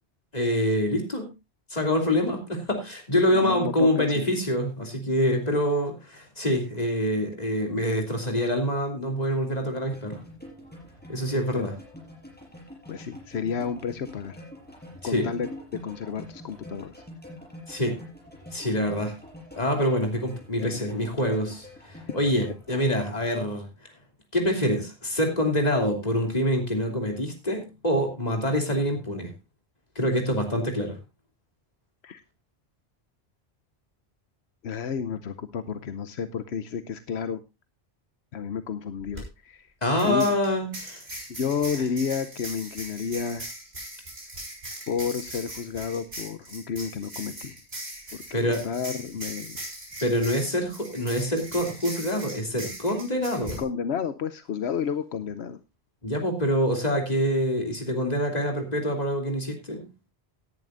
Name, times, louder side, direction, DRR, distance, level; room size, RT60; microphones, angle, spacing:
voice 1, 0.3-1.3 1.7-10.2 11.1-11.7 15.0-15.3 17.7-18.0 18.5-19.1 19.6-23.7 24.3-29.3 29.9-31.0 39.8-41.0 48.3-48.6 50.0-53.6 56.0-59.9, equal, 40° left, 3 dB, 3.2 m, -26 dB
voice 2, 3.3-4.3 11.5-11.7 12.9-14.4 15.0-15.5 15.8-17.0 20.6-20.9 22.1-22.2 32.0-32.2 34.6-37.4 38.3-39.7 40.0-40.3 41.3-43.5 44.9-47.6 48.1-49.6 53.6-55.6, left 6 dB, 80° left, 11 dB, 1.0 m, -31 dB
sound 1, 9.9-23.0, left 1 dB, 10° left, 5.6 m, -45 dB
sound 2, 39.0-39.2 40.0-53.6, right 1 dB, 75° right, 5.5 m, -40 dB
17.5 x 10.5 x 2.5 m, 0.25 s
omnidirectional pair, 1.1 m